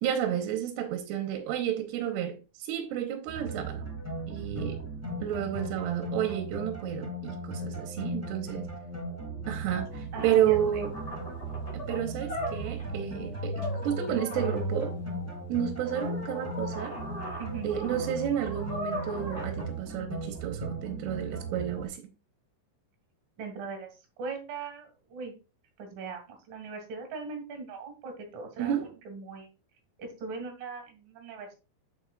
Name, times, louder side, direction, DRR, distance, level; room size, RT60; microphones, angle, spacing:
voice 1, 0.0-3.9 4.3-4.8 5.2-8.7 9.5-10.9 11.7-15.0 15.5-17.0 17.6-22.0 28.6-28.9, right 10 dB, 75° right, 2.9 m, -31 dB
sound 1, 3.3-21.9, right 1 dB, 10° right, 0.8 m, -37 dB
sound 2, 9.9-10.0 10.1-12.9 13.4-14.7 15.9-19.7, left 1 dB, 15° left, 4.9 m, -39 dB
voice 2, 10.1-10.8 17.4-17.7 23.4-25.3 25.8-28.7 29.0-29.5 30.0-31.6, right 5 dB, 60° right, 3.2 m, -40 dB
9.0 x 6.8 x 2.4 m
omnidirectional pair, 5.1 m